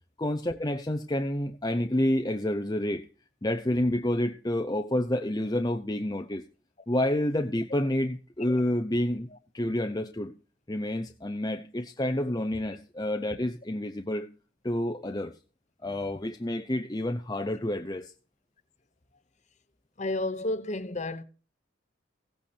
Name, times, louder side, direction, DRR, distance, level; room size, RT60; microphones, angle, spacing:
voice 1, 0.2-3.0 3.4-6.4 6.9-9.3 9.5-10.3 10.7-14.3 14.6-15.3 15.8-18.1, left 1 dB, 20° left, 0.7 m, -29 dB
voice 2, 20.0-21.2, left 2 dB, 35° left, 1.1 m, -31 dB
16.5 x 8.6 x 4.5 m
head